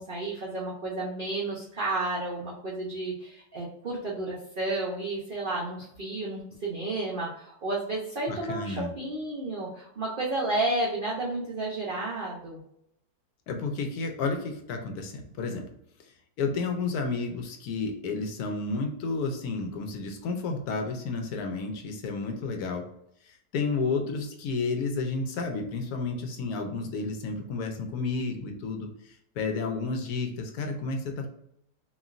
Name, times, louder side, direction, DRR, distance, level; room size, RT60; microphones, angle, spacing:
voice 1, 0.0-12.6, right 2 dB, 90° right, -5 dB, 0.4 m, -32 dB
voice 2, 8.3-8.9 13.5-15.7 16.4-22.8 23.2-31.3, left 4 dB, 70° left, 3 dB, 1.0 m, -31 dB
3.0 x 2.5 x 2.4 m, 0.75 s
omnidirectional pair, 1.8 m